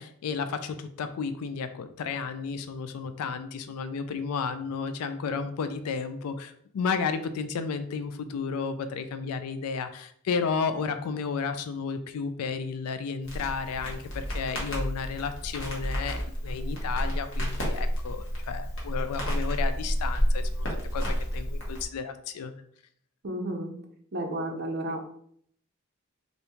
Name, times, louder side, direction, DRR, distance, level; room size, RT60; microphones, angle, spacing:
voice 1, 0.0-22.5, left 5 dB, 85° left, 10 dB, 0.3 m, -32 dB
Crackle, 13.2-21.9, equal, 55° left, 1.0 m, -30 dB
voice 2, 23.2-23.7 24.1-25.0, right 1 dB, 45° right, 4 dB, 0.5 m, -32 dB
3.4 x 2.6 x 2.9 m, 0.64 s
head